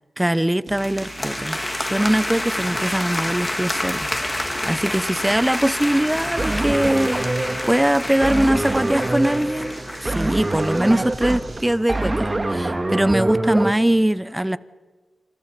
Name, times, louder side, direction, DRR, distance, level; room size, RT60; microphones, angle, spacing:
voice 1, 0.2-14.6, right 1 dB, 10° right, 0.9 m, -22 dB
sound 1, 0.7-11.0, left 1 dB, 15° left, 3.1 m, -29 dB
sound 2, 0.7-11.8, right 3 dB, 50° right, 3.1 m, -40 dB
sound 3, 6.4-13.7, right 2 dB, 25° right, 1.9 m, -25 dB
28.5 x 27.0 x 5.3 m
cardioid pair, 70°, 0 cm